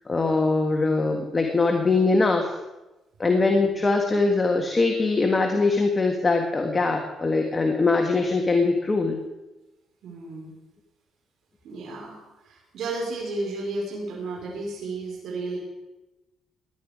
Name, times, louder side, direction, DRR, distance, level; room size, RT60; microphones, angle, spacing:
voice 1, 0.1-2.6 3.2-9.2, left 3 dB, 25° left, 3 dB, 1.7 m, -22 dB
voice 2, 3.2-3.7 10.0-10.5 11.6-12.2 12.4-15.6, right 2 dB, 70° right, -3 dB, 4.9 m, -33 dB
17.5 x 11.0 x 5.1 m, 1.0 s
cardioid pair, 90°, 0 cm